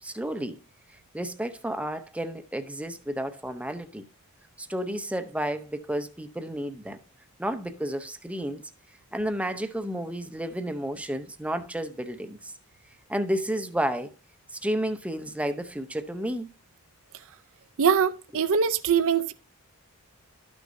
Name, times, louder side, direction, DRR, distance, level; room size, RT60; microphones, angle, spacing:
voice 1, 0.0-0.6 1.1-4.1 4.6-7.0 7.4-8.6 9.1-12.5 13.1-14.1 14.5-16.5, right 1 dB, 5° right, 0.6 m, -31 dB
voice 2, 17.8-19.3, right 7 dB, 65° right, 0.5 m, -23 dB
12.5 x 6.2 x 2.6 m
head